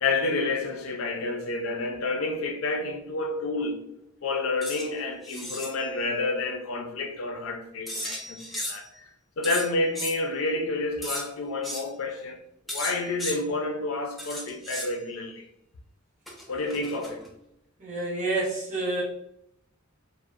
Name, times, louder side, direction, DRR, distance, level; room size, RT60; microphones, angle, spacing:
voice 1, 0.0-3.8 4.2-8.9 9.4-12.4 12.7-15.4 16.5-17.2, left 3 dB, 70° left, 0.4 m, -29 dB
sound 1, 4.6-4.9 5.2-5.7 7.9-8.9 9.4-10.1 11.0-11.2 11.6-11.9 12.7-13.4 14.2-14.9 16.3-17.3, equal, ahead, 0.3 m, -35 dB
voice 2, 17.8-19.0, right 2 dB, 35° right, 0.7 m, -29 dB
2.6 x 2.1 x 2.4 m
head